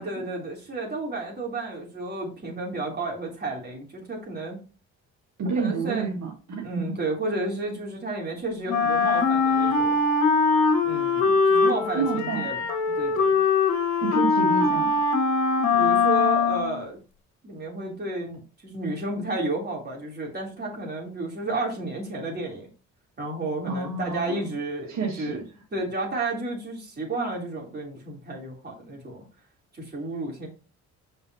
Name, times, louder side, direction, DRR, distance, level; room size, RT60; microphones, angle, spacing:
voice 1, 0.0-4.6 5.5-6.1 6.6-10.0 10.8-12.7 13.0-13.4 15.7-17.0 17.4-22.7 23.2-29.2 29.7-30.5, right 2 dB, 35° right, -2 dB, 3.3 m, -32 dB
voice 2, 5.4-7.0 11.9-12.5 14.0-14.9 23.6-24.4 24.9-25.4, right 5 dB, 65° right, -1 dB, 1.7 m, -29 dB
Wind instrument woodwind instrument, 8.7-16.8, left 4 dB, 70° left, 1.6 m, -22 dB
6.9 x 5.5 x 2.8 m, 0.34 s
cardioid pair, 90°, 30 cm